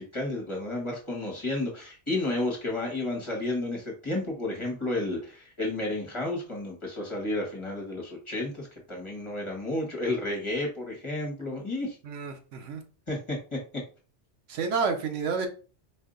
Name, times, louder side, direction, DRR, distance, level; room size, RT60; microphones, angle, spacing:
voice 1, 0.0-12.0 13.1-13.8, left 2 dB, 25° left, -1 dB, 1.3 m, -32 dB
voice 2, 12.0-12.8 14.5-15.5, right 5 dB, 85° right, 6 dB, 1.1 m, -30 dB
4.3 x 2.7 x 3.8 m, 0.37 s
omnidirectional pair, 1.2 m